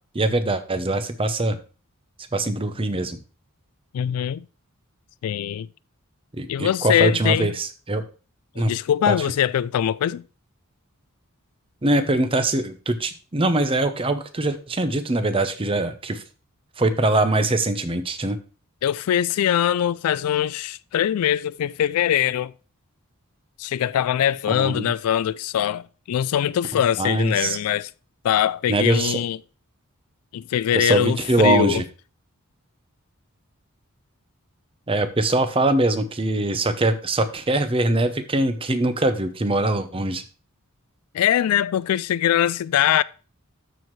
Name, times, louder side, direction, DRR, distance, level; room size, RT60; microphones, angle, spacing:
voice 1, 0.1-1.6 2.3-3.2 6.3-8.0 8.5-8.7 9.1-9.2 11.8-16.2 16.8-18.4 24.5-24.9 27.0-27.6 28.7-29.2 30.7-31.8 34.9-40.2, right 2 dB, 25° right, 0.8 m, -22 dB
voice 2, 3.9-4.5 5.2-5.7 6.5-7.5 8.6-10.2 18.8-22.5 23.6-27.9 28.2-29.4 30.3-31.8 41.1-43.0, left 10 dB, 80° left, 0.3 m, -22 dB
13.0 x 4.5 x 3.1 m
head